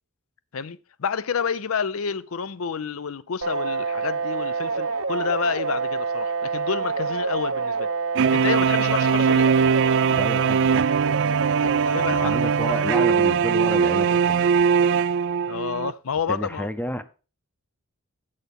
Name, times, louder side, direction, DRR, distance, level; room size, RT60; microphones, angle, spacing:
voice 1, 0.5-7.9 8.3-9.5 11.6-12.3 15.5-16.7, left 6 dB, 70° left, 0.6 m, -29 dB
sound 1, 3.4-12.7, right 4 dB, 85° right, 1.2 m, -27 dB
sound 2, 8.2-15.9, right 6 dB, 60° right, 0.4 m, -21 dB
voice 2, 10.1-11.5 12.2-14.9 16.3-17.0, equal, 10° left, 0.7 m, -32 dB
9.2 x 6.5 x 5.3 m
head